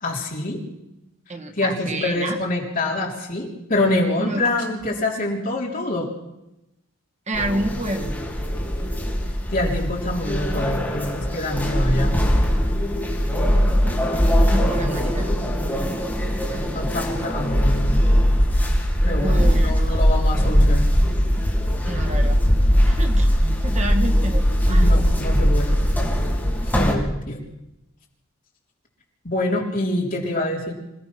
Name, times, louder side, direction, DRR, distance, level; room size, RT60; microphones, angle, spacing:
voice 1, 0.0-0.6 1.6-6.1 9.5-12.2 14.6-15.0 16.7-18.1 19.1-20.9 24.7-25.8 26.8-27.4 29.2-30.7, left 1 dB, 45° left, -1 dB, 3.8 m, -25 dB
voice 2, 1.3-2.4 4.2-4.8 7.3-8.1 11.5-11.7 14.4-15.3 16.5-16.9 19.2-20.0 21.8-22.4 22.8-23.4 23.6-24.9, right 1 dB, 35° right, 4 dB, 1.9 m, -29 dB
sound 1, 7.3-26.9, equal, 10° left, 3.9 m, -20 dB
26.5 x 17.0 x 6.1 m, 0.92 s
head